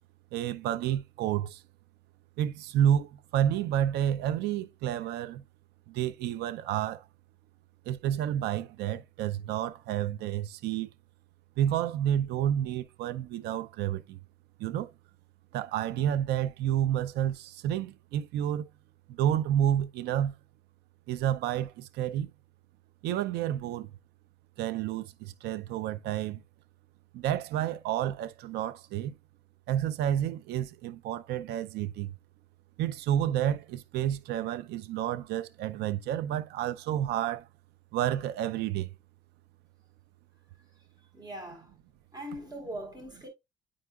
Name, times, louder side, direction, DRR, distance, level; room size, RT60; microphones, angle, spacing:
voice 1, 0.3-1.6 2.4-5.4 5.9-7.0 7.9-10.9 11.6-14.2 14.6-14.9 15.5-18.6 19.1-20.3 21.1-22.3 23.0-23.9 24.6-26.4 27.1-29.1 29.7-32.1 32.8-37.5 37.9-38.9, right 11 dB, 80° right, 0.5 m, -30 dB
voice 2, 40.8-41.7 42.1-43.3, equal, 25° right, 3.6 m, -41 dB
8.7 x 4.6 x 2.3 m
cardioid pair, 110°, 17 cm